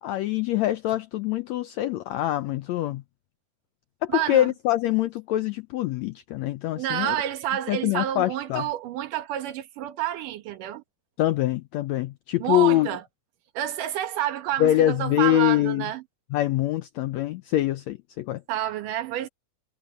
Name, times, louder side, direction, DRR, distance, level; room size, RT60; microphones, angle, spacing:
voice 1, 0.0-3.0 4.0-7.2 7.7-8.7 11.2-12.9 14.6-15.9 16.3-18.4, left 14 dB, 80° left, 1.6 m, -24 dB
voice 2, 4.1-4.5 6.8-10.8 12.4-13.0 13.5-16.0 18.5-19.3, right 13 dB, 75° right, 2.8 m, -29 dB
omnidirectional pair, 3.8 m